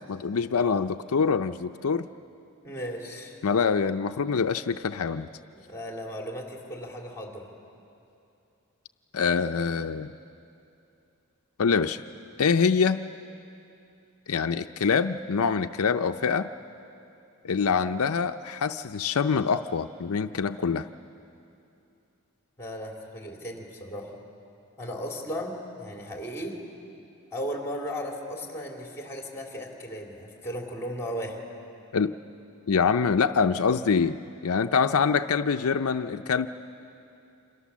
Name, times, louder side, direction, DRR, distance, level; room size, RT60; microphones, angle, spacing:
voice 1, 0.1-2.1 3.4-5.3 9.1-10.1 11.6-12.0 12.4-13.0 14.3-16.5 17.4-20.9 31.9-32.1 32.7-34.2 34.4-36.5, left 5 dB, 75° left, 8 dB, 0.6 m, -25 dB
voice 2, 2.6-3.4 5.5-7.5 22.6-24.1 24.8-26.6 27.3-31.4, equal, 10° left, 0 dB, 3.4 m, -36 dB
28.0 x 26.5 x 7.3 m, 2.7 s
head